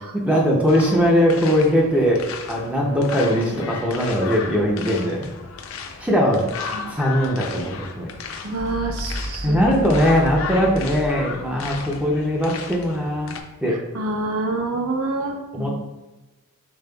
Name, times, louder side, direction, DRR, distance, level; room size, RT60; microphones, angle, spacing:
voice 1, 0.1-5.3 6.0-6.5 6.9-8.1 9.4-13.8 15.5-15.9, equal, 5° right, -2 dB, 0.5 m, -20 dB
sound 1, 0.7-13.4, left 5 dB, 60° left, 0.4 m, -35 dB
voice 2, 8.4-9.6 13.7-15.9, right 2 dB, 70° right, 3 dB, 0.6 m, -27 dB
sound 2, 8.6-12.8, equal, 80° left, 1.0 m, -33 dB
5.1 x 3.8 x 2.3 m, 1.1 s
head